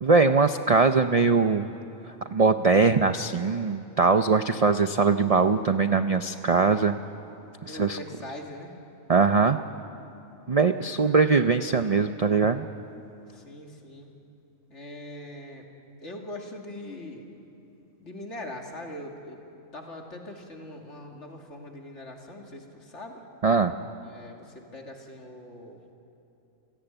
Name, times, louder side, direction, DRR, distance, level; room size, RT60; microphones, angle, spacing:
voice 1, 0.0-1.7 2.3-7.0 7.7-8.0 9.1-9.6 10.5-12.7 23.4-23.7, right 4 dB, 45° right, 9 dB, 0.4 m, -21 dB
voice 2, 7.7-8.8 10.7-11.2 13.3-14.1 14.7-15.6 16.0-17.3 18.0-19.4 19.7-23.2 24.0-25.8, left 1 dB, 55° left, 2 dB, 2.7 m, -41 dB
27.0 x 17.5 x 9.0 m, 2.9 s
omnidirectional pair, 1.5 m